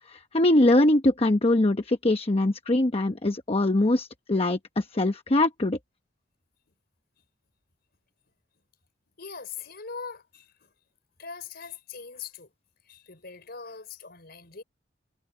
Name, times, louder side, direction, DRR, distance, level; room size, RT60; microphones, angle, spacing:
voice 1, 0.1-5.8, left 1 dB, 35° left, 0.9 m, -22 dB
voice 2, 9.2-10.7 11.2-12.5 12.8-14.6, left 5 dB, 60° left, 4.8 m, -41 dB
head